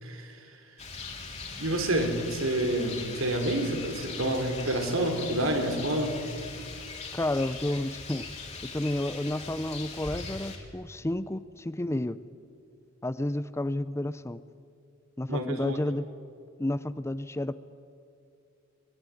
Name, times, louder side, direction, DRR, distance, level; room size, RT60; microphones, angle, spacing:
voice 1, 0.0-0.6 1.6-6.1 15.3-15.8, right 1 dB, 75° right, 5 dB, 3.5 m, -28 dB
Rain, 0.8-10.6, left 4 dB, 35° left, 3.6 m, -40 dB
voice 2, 7.1-8.3 8.6-12.2 13.0-14.4 15.2-16.1 16.6-17.5, left 1 dB, 15° left, 15 dB, 0.5 m, -31 dB
23.0 x 21.0 x 9.7 m, 2.4 s
head